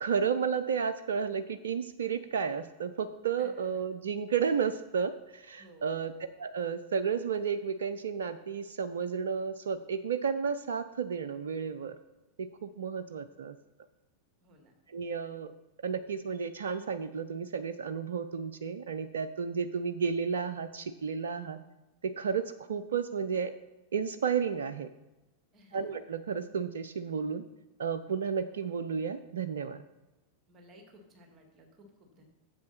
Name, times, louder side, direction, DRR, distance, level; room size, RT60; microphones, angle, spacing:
voice 1, 0.0-6.1 6.4-12.0 12.4-13.6 14.9-15.5 15.8-21.6 22.0-23.5 23.9-24.9 25.7-27.4 27.8-29.8, right 6 dB, 65° right, 10 dB, 0.4 m, -32 dB
voice 2, 3.4-3.8 5.6-6.1 14.4-14.7 25.5-26.0 30.5-32.2, equal, 25° right, 2 dB, 2.0 m, -57 dB
9.4 x 7.6 x 4.2 m, 1.0 s
figure-of-eight pair, 90°, 0 cm